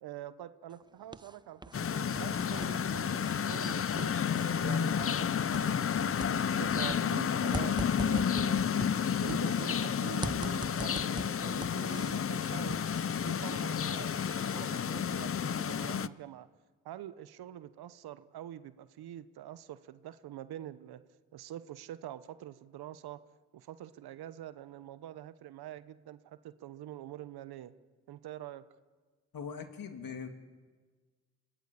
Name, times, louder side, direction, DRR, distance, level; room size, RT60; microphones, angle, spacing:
voice 1, 0.0-3.2 3.5-4.1 4.6-8.9 9.2-12.8 13.3-16.5 16.8-21.0 21.3-23.2 23.5-27.7 28.1-28.6, right 12 dB, 80° right, 14 dB, 1.0 m, -45 dB
sound 1, 0.7-1.8 2.1-5.9 6.2-9.8 10.2-12.3 12.7-14.8, right 2 dB, 10° right, 0.7 m, -44 dB
sound 2, 1.7-16.1, left 7 dB, 35° left, 0.7 m, -31 dB
voice 2, 29.3-30.3, left 6 dB, 65° left, 5 dB, 2.9 m, -41 dB
26.5 x 18.5 x 8.4 m, 1.4 s
supercardioid pair, 55°, 37 cm